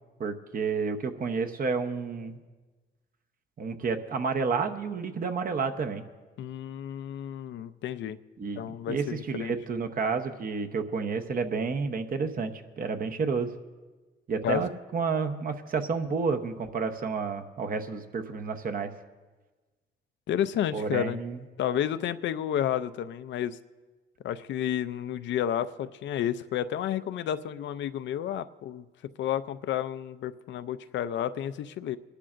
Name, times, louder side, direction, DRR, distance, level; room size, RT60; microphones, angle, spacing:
voice 1, 0.2-2.4 3.6-6.0 8.4-13.5 14.3-18.9 20.7-21.4, right 5 dB, 45° right, 6 dB, 0.9 m, -30 dB
voice 2, 6.4-8.2 8.6-9.5 14.4-14.7 20.3-21.2 21.6-23.6 24.2-28.8 29.2-32.0, left 10 dB, 65° left, 12 dB, 0.5 m, -31 dB
25.5 x 11.5 x 2.5 m, 1.3 s
cardioid pair, 90°, 20 cm